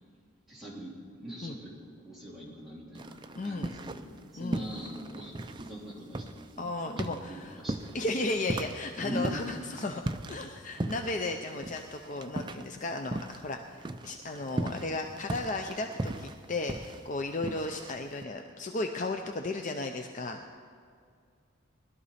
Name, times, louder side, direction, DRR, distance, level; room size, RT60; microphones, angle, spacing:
voice 1, 0.5-1.8 2.0-8.0 9.0-9.4, equal, ahead, -8 dB, 3.1 m, -42 dB
sound 1, 2.9-4.2 4.5-13.5 13.8-18.2, right 1 dB, 20° right, 0.4 m, -38 dB
voice 2, 3.4-3.8 4.4-4.7 6.6-7.6 7.9-10.0 10.3-20.4, left 2 dB, 35° left, 4 dB, 0.5 m, -35 dB
20.5 x 12.0 x 4.2 m, 2.2 s
head